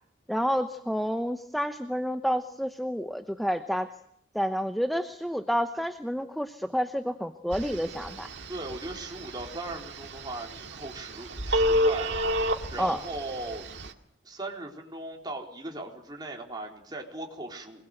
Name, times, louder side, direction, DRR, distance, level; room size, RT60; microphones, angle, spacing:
voice 1, 0.3-3.9 4.3-8.3 12.8-13.0, equal, ahead, 8 dB, 0.9 m, -29 dB
Telephone, 7.5-13.9, equal, 75° right, 2.1 m, -31 dB
voice 2, 8.5-12.2 12.7-13.7 14.2-17.9, right 2 dB, 25° right, 0 dB, 4.2 m, -38 dB
25.0 x 21.0 x 7.9 m, 0.68 s
head